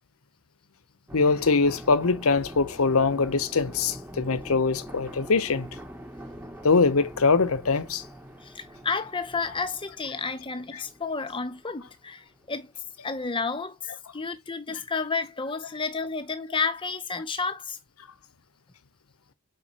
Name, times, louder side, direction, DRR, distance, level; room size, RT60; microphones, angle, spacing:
voice 1, 1.1-5.7 6.6-8.0, left 4 dB, 75° left, 0.8 m, -23 dB
sound 1, 1.1-12.5 12.8-12.9, equal, 10° right, 1.1 m, -44 dB
voice 2, 8.4-12.7 13.0-13.8 14.1-17.8, left 4 dB, 20° left, 0.8 m, -31 dB
5.2 x 4.4 x 4.3 m
head